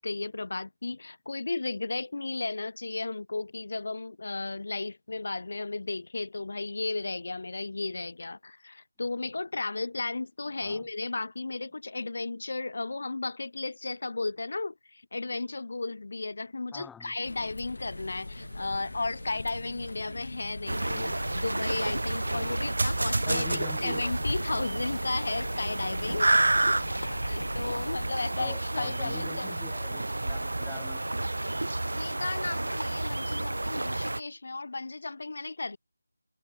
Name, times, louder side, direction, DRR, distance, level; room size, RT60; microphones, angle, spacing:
voice 1, 0.0-26.3 26.7-29.5 31.9-35.8, left 3 dB, 40° left, 1.8 m, -34 dB
voice 2, 16.7-17.1 23.2-24.1 28.4-31.3, left 7 dB, ahead, 2.0 m, -46 dB
sound 1, 17.2-28.1, left 2 dB, 60° left, 1.1 m, -41 dB
sound 2, 17.9-23.6, right 2 dB, 60° right, 4.3 m, -36 dB
sound 3, 20.7-34.2, right 2 dB, 80° right, 1.5 m, -30 dB
figure-of-eight pair, 180°, 0 cm